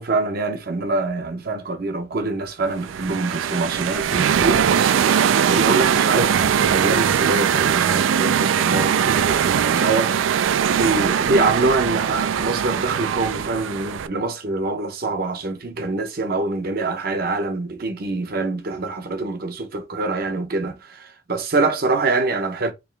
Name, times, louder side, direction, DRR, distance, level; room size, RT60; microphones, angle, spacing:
voice 1, 0.0-10.4 10.7-22.7, right 3 dB, 50° right, 0.7 m, -25 dB
sound 1, 2.7-14.1, right 8 dB, 85° right, 0.3 m, -20 dB
3.4 x 2.9 x 3.3 m
head